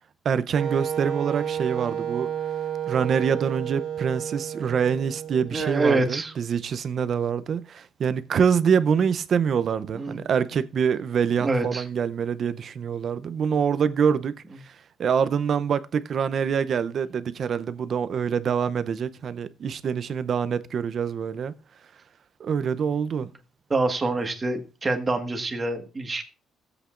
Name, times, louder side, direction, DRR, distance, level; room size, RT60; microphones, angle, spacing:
voice 1, 0.2-2.3 2.9-14.7 15.0-21.5 22.4-23.3, right 7 dB, 55° right, 0.6 m, -25 dB
Wind instrument woodwind instrument, 0.6-6.4, right 9 dB, 85° right, 1.8 m, -31 dB
voice 2, 5.5-6.3 10.0-10.2 11.4-11.8 23.2-23.3 23.7-26.2, right 2 dB, 30° right, 1.6 m, -26 dB
16.0 x 8.0 x 2.5 m
cardioid pair, 90°, 0 cm